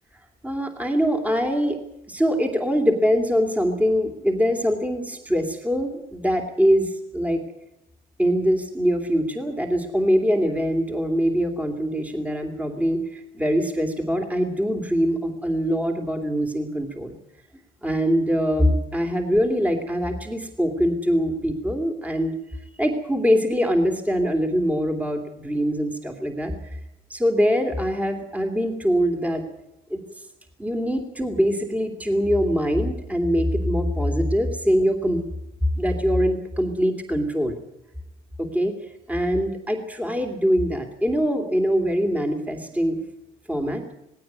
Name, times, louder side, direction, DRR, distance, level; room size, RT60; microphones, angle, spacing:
voice 1, 0.4-1.8 2.1-7.4 8.2-17.2 17.8-22.3 22.8-26.5 27.1-29.4 29.9-30.0 30.6-35.2 35.7-37.6 38.4-38.7 39.1-43.0 43.5-43.8, equal, 10° right, 4 dB, 2.8 m, -23 dB
19.0 x 17.0 x 9.5 m, 0.86 s
cardioid pair, 110°, 17 cm